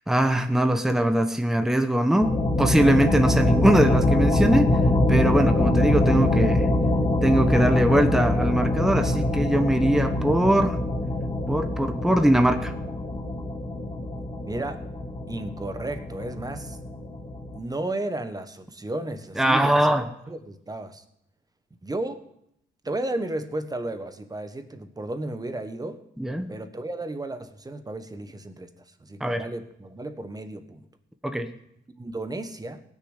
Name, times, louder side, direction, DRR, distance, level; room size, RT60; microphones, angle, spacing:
voice 1, 0.1-4.7 5.1-6.7 7.2-10.8 11.5-12.7 19.4-20.1 26.2-26.5 29.2-29.5 31.2-31.5, right 1 dB, ahead, 7 dB, 1.0 m, -22 dB
sound 1, 2.2-17.6, left 1 dB, 25° left, 1.6 m, -24 dB
voice 2, 14.4-14.8 15.3-16.8 17.5-19.9 20.3-21.0 21.8-22.2 22.8-26.0 26.5-28.7 29.0-30.9 32.0-32.8, right 2 dB, 20° right, 9 dB, 1.3 m, -33 dB
17.5 x 6.5 x 8.1 m, 0.76 s
cardioid pair, 90°, 20 cm